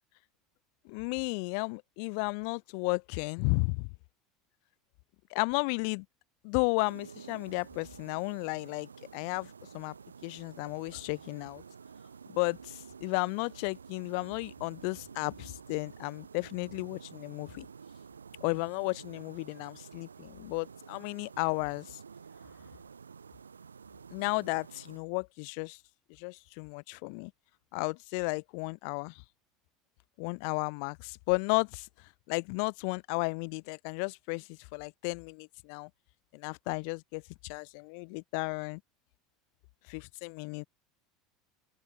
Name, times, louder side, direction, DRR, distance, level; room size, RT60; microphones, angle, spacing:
voice 1, 0.8-3.9 5.3-6.1 6.4-9.9 10.2-11.6 12.3-17.7 18.4-22.0 24.1-25.8 26.1-27.3 27.7-29.2 30.2-35.9 36.3-38.8 39.9-40.7, left 40 dB or more, 60° left, 0.4 m, -34 dB
sound 1, 6.8-25.0, right 6 dB, 85° right, 4.1 m, -50 dB
open air
figure-of-eight pair, 75°, 0 cm